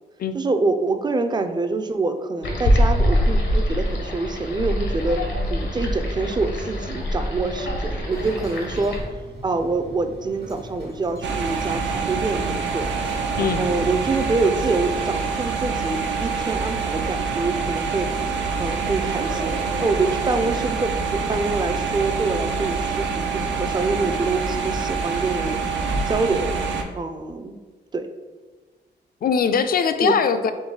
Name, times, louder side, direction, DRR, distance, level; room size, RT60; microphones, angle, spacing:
voice 1, 0.3-5.2 5.5-9.0 9.4-12.9 13.3-18.1 18.6-19.5 19.8-25.7 26.1-26.5 27.0-27.6 27.9-28.1 30.0-30.1, right 3 dB, 25° right, 7 dB, 0.4 m, -25 dB
sound 1, 2.4-9.0, equal, 85° left, 0.8 m, -24 dB
sound 2, 8.1-14.5, right 1 dB, 60° right, 1.3 m, -41 dB
sound 3, 11.2-26.8, right 5 dB, 80° right, 0.5 m, -26 dB
voice 2, 13.4-13.7 29.2-30.5, left 6 dB, 55° left, 10 dB, 0.4 m, -21 dB
3.8 x 2.7 x 3.8 m, 1.3 s
cardioid pair, 65°, 19 cm